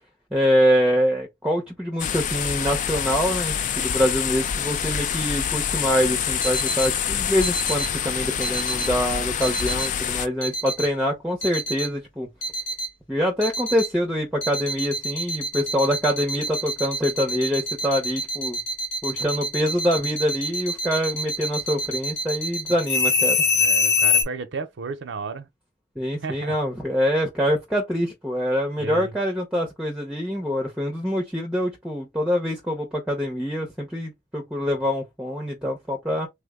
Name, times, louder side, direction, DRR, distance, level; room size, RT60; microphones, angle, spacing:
voice 1, 0.3-12.3 13.1-18.6 19.0-23.4 26.0-36.3, equal, 5° right, 0.6 m, -25 dB
sound 1, 2.0-10.3, left 8 dB, 40° left, 0.3 m, -26 dB
sound 2, 6.4-6.9 7.4-7.9 8.4-8.9 9.4-9.9 10.4-10.9 11.4-11.9 12.4-12.9 13.4-13.9 14.4-24.2, left 2 dB, 85° left, 1.3 m, -25 dB
voice 2, 23.6-25.5 26.2-26.6 28.8-29.1, right 4 dB, 70° right, 0.5 m, -33 dB
3.5 x 2.0 x 3.5 m
head